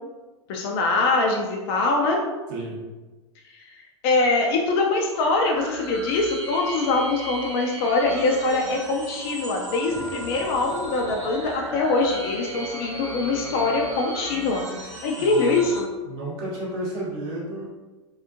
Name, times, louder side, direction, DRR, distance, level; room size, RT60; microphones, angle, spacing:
voice 1, 0.5-2.2 3.5-3.6 4.0-14.7 15.0-15.9, left 3 dB, 55° left, 0 dB, 0.4 m, -23 dB
voice 2, 2.5-2.8 15.1-15.6 16.0-17.6, right 1 dB, 55° right, -5 dB, 1.2 m, -32 dB
sound 1, 5.1-15.8, right 1 dB, 85° right, 0.7 m, -37 dB
sound 2, 9.9-15.4, left 1 dB, 15° right, 0.6 m, -39 dB
2.7 x 2.4 x 2.4 m, 1.2 s
hypercardioid pair, 95°, 16 cm